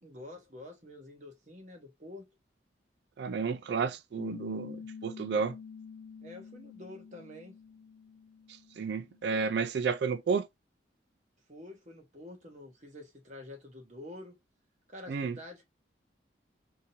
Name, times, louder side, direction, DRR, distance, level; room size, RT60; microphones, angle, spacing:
voice 1, 0.0-2.2 6.2-7.5 11.5-14.4 14.9-15.6, left 1 dB, 40° right, 1.2 m, -48 dB
voice 2, 3.2-5.6 8.8-10.5 15.1-15.4, right 5 dB, 65° right, 0.4 m, -31 dB
Piano, 4.2-9.3, left 6 dB, 75° left, 0.4 m, -47 dB
3.6 x 2.9 x 2.7 m
head